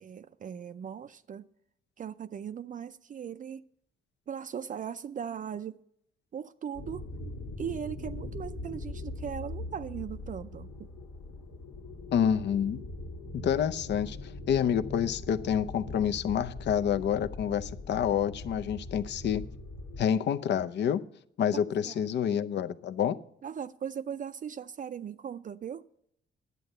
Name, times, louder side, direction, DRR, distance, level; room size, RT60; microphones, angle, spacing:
voice 1, 0.0-1.5 2.0-3.6 4.3-5.8 6.3-7.0 7.6-10.9 21.5-22.4 23.4-25.8, right 8 dB, 40° right, 0.5 m, -39 dB
sound 1, 6.7-20.0, left 2 dB, 85° left, 1.7 m, -41 dB
voice 2, 12.1-12.8 13.3-14.2 14.5-19.4 20.0-21.0 21.4-23.2, left 8 dB, 60° left, 0.6 m, -28 dB
10.5 x 8.1 x 6.6 m
cardioid pair, 90°, 20 cm